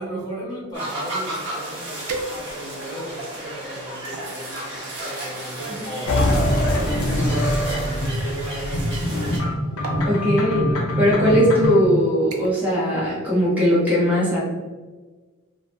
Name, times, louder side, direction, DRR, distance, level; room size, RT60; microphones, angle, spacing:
voice 1, 0.0-9.2, right 1 dB, 20° left, -8 dB, 1.1 m, -35 dB
sound 1, 0.7-9.4, right 1 dB, 55° right, 0.9 m, -33 dB
sound 2, 2.1-2.8 3.5-4.3 5.3-8.2 9.3-9.5 9.8-10.1 11.0-11.2 11.6-11.9 12.3-12.7 13.0-13.4 13.8-13.9, right 3 dB, 85° right, 0.4 m, -37 dB
sound 3, 6.1-11.9, left 1 dB, 80° left, 0.5 m, -23 dB
voice 2, 10.1-10.7 11.0-14.4, equal, 5° right, -8 dB, 0.7 m, -19 dB
2.6 x 2.0 x 3.1 m, 1.3 s
head